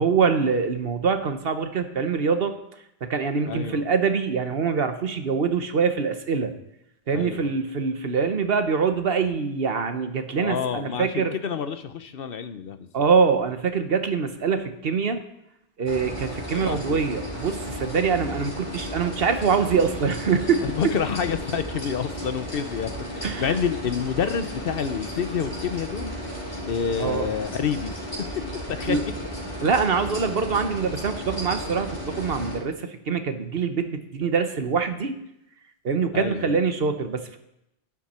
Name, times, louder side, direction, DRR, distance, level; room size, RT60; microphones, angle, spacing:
voice 1, 0.0-2.5 3.0-6.5 7.1-11.3 12.9-15.2 15.8-20.6 23.2-23.5 27.0-27.3 28.9-29.0 29.6-35.1 35.8-37.4, right 5 dB, 65° right, 8 dB, 1.2 m, -24 dB
voice 2, 3.5-3.8 7.1-7.5 10.4-13.1 16.5-17.0 20.6-26.1 26.7-28.0 28.7-29.0 36.1-36.5, left 7 dB, 65° left, 11 dB, 0.9 m, -28 dB
sound 1, 15.9-32.6, equal, 45° left, 4.6 m, -34 dB
12.0 x 11.0 x 4.3 m, 0.83 s
omnidirectional pair, 1.1 m